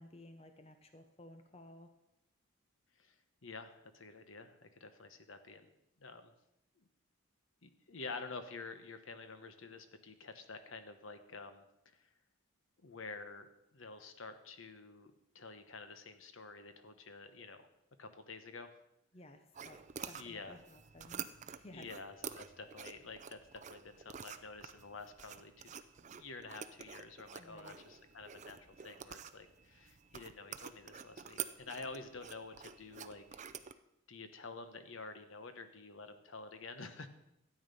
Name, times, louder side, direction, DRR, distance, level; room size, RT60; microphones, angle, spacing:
voice 1, 0.0-1.9 19.1-21.9 27.4-27.8, left 1 dB, 30° left, 7 dB, 0.7 m, -56 dB
voice 2, 3.4-5.7 6.0-6.3 6.8-6.9 7.6-12.1 12.8-13.5 13.7-17.7 18.0-18.7 20.1-20.6 21.7-25.7 26.0-33.4 34.1-37.1, left 3 dB, 65° left, 9 dB, 1.0 m, -49 dB
sound 1, 19.5-33.7, right 8 dB, 35° right, 0.5 m, -49 dB
12.5 x 8.7 x 5.4 m, 0.83 s
head